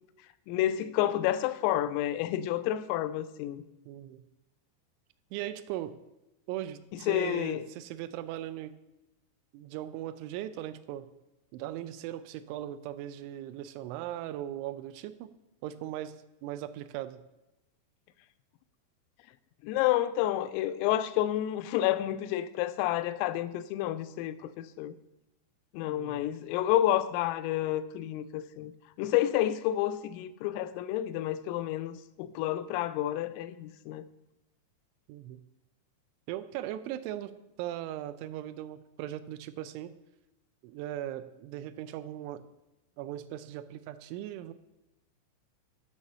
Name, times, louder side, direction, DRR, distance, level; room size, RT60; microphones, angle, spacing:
voice 1, 0.5-3.6 6.9-7.6 19.6-24.9 25.7-28.7 29.0-34.0, left 13 dB, 85° left, 3.2 m, -30 dB
voice 2, 3.9-4.2 5.3-6.0 6.5-8.8 9.5-11.1 11.5-15.3 15.6-17.2 25.9-26.2 35.1-35.4 36.3-37.3 37.6-40.0 40.6-42.4 43.0-44.5, right 12 dB, 90° right, 2.6 m, -39 dB
12.0 x 6.4 x 5.5 m
omnidirectional pair, 5.9 m